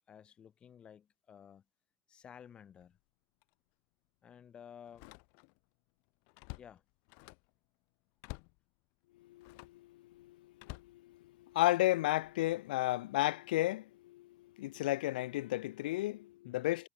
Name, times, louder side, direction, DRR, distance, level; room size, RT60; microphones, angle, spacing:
voice 1, 0.1-1.6 2.1-3.0 4.2-5.1 6.6-6.8 16.4-16.7, left 8 dB, 20° left, 4.2 m, -54 dB
Slam, 2.7-3.0 3.4-3.5 4.9-5.7 6.0-7.6 8.2-8.6 9.4-9.8 10.6-11.6 12.2-12.5, left 38 dB, 50° left, 1.5 m, -51 dB
voice 2, 9.2-16.9, left 17 dB, 85° left, 0.4 m, -34 dB
supercardioid pair, 165°, 5 cm